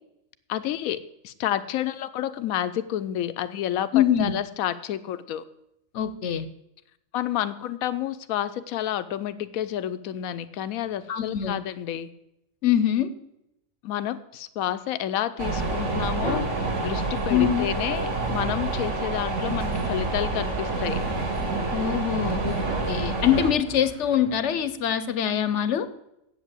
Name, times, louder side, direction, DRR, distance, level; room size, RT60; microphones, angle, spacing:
voice 1, 0.5-1.0 1.2-5.4 7.1-12.1 13.8-21.0, left 11 dB, 85° left, 12 dB, 1.0 m, -30 dB
voice 2, 3.9-4.4 5.9-6.5 11.1-11.6 12.6-13.1 17.3-17.7 21.7-25.9, left 9 dB, 65° left, 13 dB, 0.9 m, -24 dB
sound 1, 15.4-23.5, right 3 dB, 60° right, 1.9 m, -27 dB
sound 2, 22.2-24.8, equal, 75° right, 3.4 m, -46 dB
8.1 x 7.9 x 8.2 m, 0.84 s
omnidirectional pair, 1.5 m